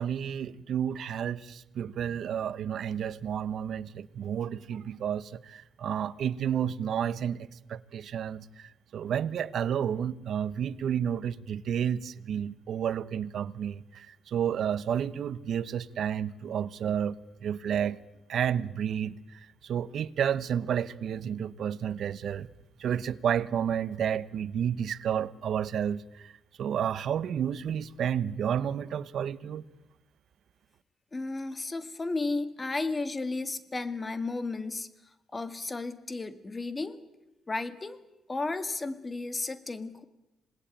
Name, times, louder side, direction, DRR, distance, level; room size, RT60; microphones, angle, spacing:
voice 1, 0.0-17.2 17.4-18.0 18.3-19.2 19.6-22.5 22.8-26.3 26.6-29.6, right 8 dB, 65° right, 1.0 m, -31 dB
voice 2, 31.1-34.9 35.3-37.0 37.5-38.0 38.3-40.1, left 3 dB, 25° left, 2.0 m, -33 dB
27.5 x 19.5 x 9.0 m
cardioid pair, 90°, 0 cm